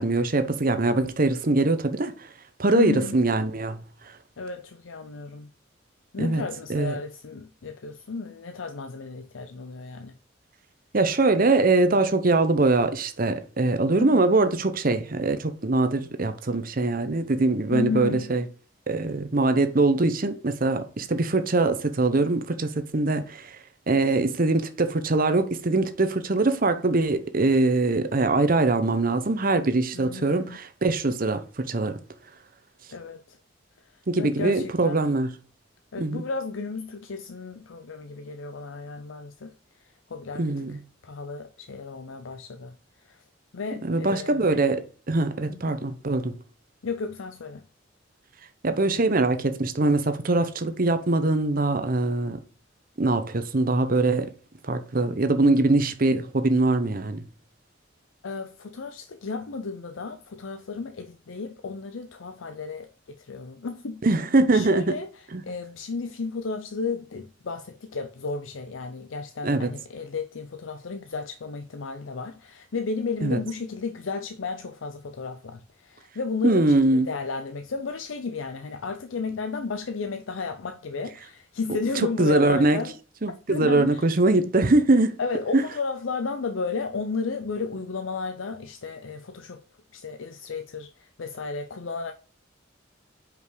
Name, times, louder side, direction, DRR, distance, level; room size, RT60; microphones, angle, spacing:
voice 1, 0.0-2.1 2.6-3.8 6.2-6.4 6.7-7.0 10.9-18.4 18.9-23.6 23.9-32.0 34.1-35.3 36.0-36.2 40.3-40.8 43.9-46.3 48.6-52.4 53.0-54.3 54.6-57.2 64.0-64.9 65.3-65.4 69.4-69.7 73.2-73.4 76.4-77.1 82.2-82.8 83.2-85.2 85.5-85.6, right 2 dB, 45° right, 0.8 m, -22 dB
voice 2, 2.7-3.2 4.4-5.5 6.1-10.1 14.0-14.3 17.7-18.3 29.9-30.6 32.9-33.4 34.2-35.1 35.9-39.5 39.8-42.7 43.0-43.2 43.5-44.5 45.5-45.7 46.8-47.7 58.2-64.0 64.5-76.8 77.1-82.9 83.3-84.0 85.2-89.6 89.9-92.1, left 4 dB, 90° left, 0.6 m, -33 dB
5.3 x 5.1 x 4.7 m
head